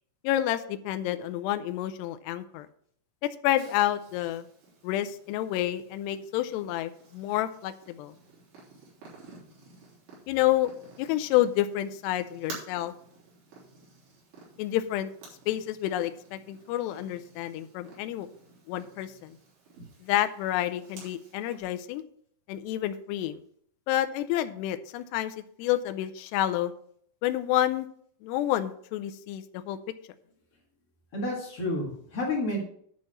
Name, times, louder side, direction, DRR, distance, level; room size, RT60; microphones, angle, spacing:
voice 1, 0.2-2.7 3.2-4.4 4.8-8.1 10.3-10.7 11.0-12.9 14.6-15.1 15.5-18.3 18.7-19.3 20.0-22.0 22.5-23.4 23.9-26.7 27.2-27.9 28.2-29.8, left 13 dB, 80° left, 10 dB, 2.7 m, -29 dB
Purr, 3.6-21.6, right 3 dB, 85° right, 5.6 m, -51 dB
voice 2, 31.1-32.6, left 2 dB, 45° left, -2 dB, 2.3 m, -30 dB
10.5 x 4.5 x 7.3 m, 0.63 s
omnidirectional pair, 4.9 m